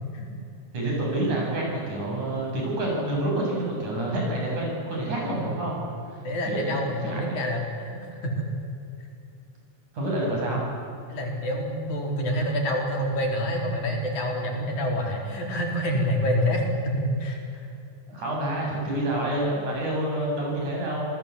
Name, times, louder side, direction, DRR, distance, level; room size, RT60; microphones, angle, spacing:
voice 1, 0.7-5.8 6.1-6.2 6.5-7.3 9.9-10.7 18.1-21.1, right 1 dB, 85° right, -2 dB, 9.5 m, -28 dB
voice 2, 6.2-8.5 11.1-17.4, equal, 80° left, 1 dB, 5.6 m, -27 dB
28.5 x 19.5 x 8.7 m, 2.6 s
omnidirectional pair, 3.4 m